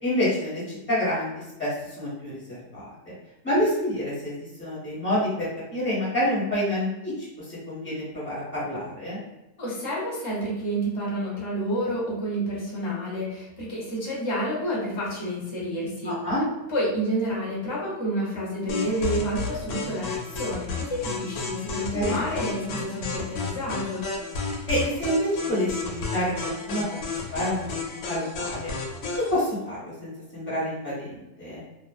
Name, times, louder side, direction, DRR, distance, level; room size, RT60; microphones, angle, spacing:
voice 1, 0.0-3.1 3.4-4.3 4.6-7.1 7.4-9.2 16.0-16.4 21.9-22.2 22.7-22.8 24.7-26.8 27.1-27.7 28.1-28.7 29.1-31.6, equal, 10° left, -8 dB, 1.1 m, -28 dB
voice 2, 9.6-16.2 16.7-24.1, equal, 25° left, -5 dB, 0.6 m, -29 dB
sound 1, 18.7-29.3, left 4 dB, 75° left, 1.0 m, -32 dB
2.4 x 2.3 x 2.4 m, 0.97 s
omnidirectional pair, 1.6 m